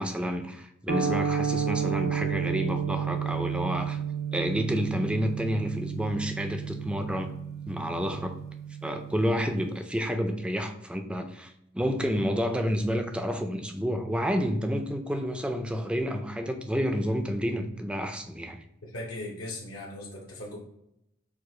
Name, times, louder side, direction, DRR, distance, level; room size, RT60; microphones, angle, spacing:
voice 1, 0.0-4.0 4.3-7.3 7.7-8.4 8.8-18.6, equal, 5° right, 5 dB, 0.3 m, -29 dB
sound 1, 0.9-9.2, right 7 dB, 75° right, 0.7 m, -31 dB
voice 2, 18.8-20.6, left 1 dB, 75° left, -4 dB, 0.8 m, -38 dB
4.8 x 2.4 x 3.7 m, 0.81 s
head